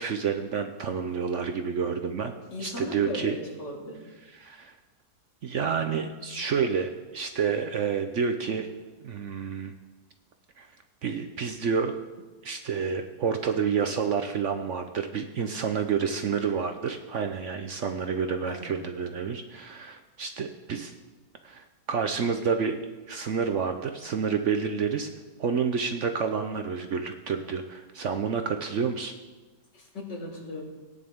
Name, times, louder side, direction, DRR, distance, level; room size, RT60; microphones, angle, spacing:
voice 1, 0.0-2.3 2.6-3.3 4.3-4.7 5.4-8.7 9.0-9.7 10.6-10.7 11.0-11.9 12.4-20.9 21.4-22.7 23.1-25.1 25.4-29.1, right 6 dB, 60° right, 7 dB, 0.8 m, -29 dB
voice 2, 2.5-4.0 18.5-18.7 29.7-30.6, left 1 dB, 85° left, -2 dB, 3.0 m, -37 dB
18.0 x 9.7 x 3.7 m, 1.2 s
omnidirectional pair, 1.8 m